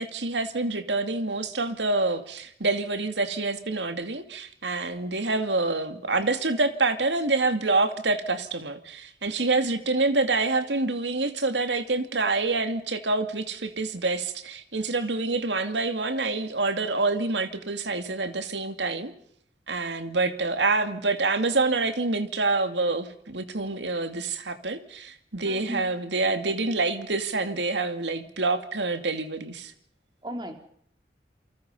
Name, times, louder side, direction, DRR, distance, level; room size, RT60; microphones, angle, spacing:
voice 1, 0.0-19.1 19.7-29.7, right 3 dB, 85° right, 2.5 m, -27 dB
voice 2, 25.4-25.9 30.2-30.5, equal, 25° right, 3.6 m, -36 dB
29.0 x 24.0 x 5.6 m
head